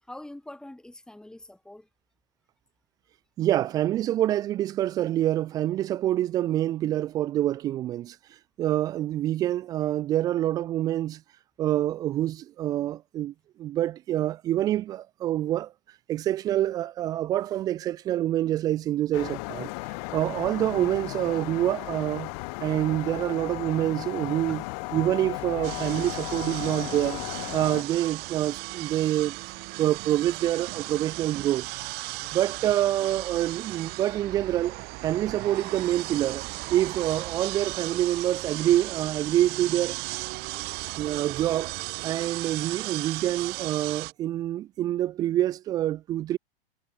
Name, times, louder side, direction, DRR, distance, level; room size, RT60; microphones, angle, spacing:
voice 1, 0.0-1.9 24.5-24.6 40.5-40.8, left 1 dB, ahead, 2.4 m, -45 dB
voice 2, 3.4-8.2 8.6-11.2 11.6-13.3 13.6-15.7 16.1-19.7 20.1-22.3 22.6-24.6 24.9-27.2 27.5-29.4 29.8-31.7 32.3-36.4 36.7-40.0 41.0-41.7 42.0-46.4, right 13 dB, 15° right, 0.3 m, -26 dB
sound 1, 19.1-27.8, left 33 dB, 40° left, 1.1 m, -35 dB
sound 2, 25.6-44.1, right 25 dB, 35° right, 1.0 m, -36 dB
supercardioid pair, 145°, 29 cm